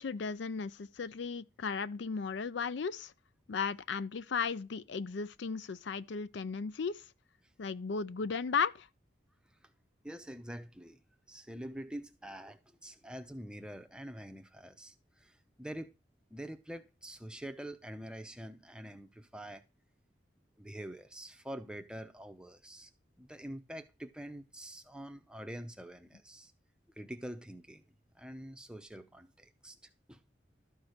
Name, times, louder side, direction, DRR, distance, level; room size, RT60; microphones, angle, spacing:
voice 1, 0.0-3.1 3.5-7.0 7.6-8.9, left 5 dB, 65° left, 0.4 m, -35 dB
voice 2, 10.0-11.0 11.3-15.9 16.3-19.6 20.6-22.9 23.2-26.5 27.0-27.8 28.1-29.8 30.1-30.2, right 1 dB, 5° right, 0.6 m, -46 dB
12.5 x 4.6 x 6.5 m
head